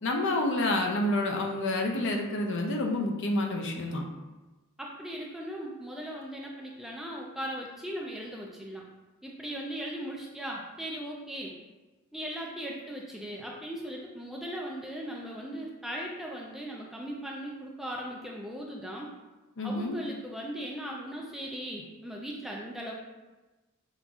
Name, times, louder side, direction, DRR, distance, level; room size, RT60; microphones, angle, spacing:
voice 1, 0.0-4.1 19.6-19.9, left 1 dB, 55° left, 2 dB, 0.5 m, -28 dB
voice 2, 4.8-8.8 9.2-11.5 12.1-19.1 19.6-22.9, equal, ahead, -2 dB, 0.3 m, -38 dB
5.5 x 2.5 x 2.3 m, 1.1 s
head